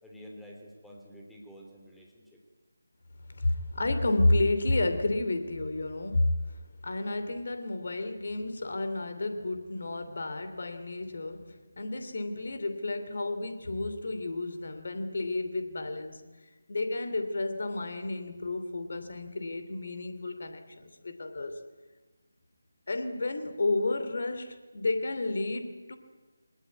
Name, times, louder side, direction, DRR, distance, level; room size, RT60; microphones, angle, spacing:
voice 1, 0.0-2.4, equal, ahead, -2 dB, 3.2 m, -49 dB
voice 2, 3.3-16.2 16.7-21.6 22.9-26.0, left 2 dB, 50° left, 8 dB, 2.8 m, -31 dB
23.0 x 19.5 x 9.6 m, 1.3 s
figure-of-eight pair, 155°, 0 cm